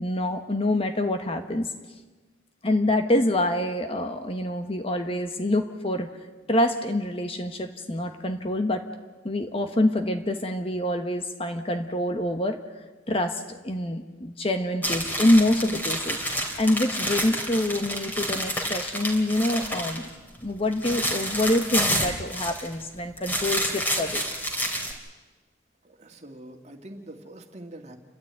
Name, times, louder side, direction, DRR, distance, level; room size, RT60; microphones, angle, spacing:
voice 1, 0.0-1.7 2.6-6.2 6.5-8.9 9.2-12.6 13.1-20.1 20.4-24.3, left 1 dB, 30° left, 6 dB, 1.3 m, -26 dB
sound 1, 14.8-20.1 20.4-22.8 23.2-24.9, equal, 10° left, 3.1 m, -29 dB
voice 2, 25.8-28.0, right 1 dB, 35° right, 4 dB, 2.2 m, -44 dB
29.5 x 13.0 x 9.1 m, 1.3 s
head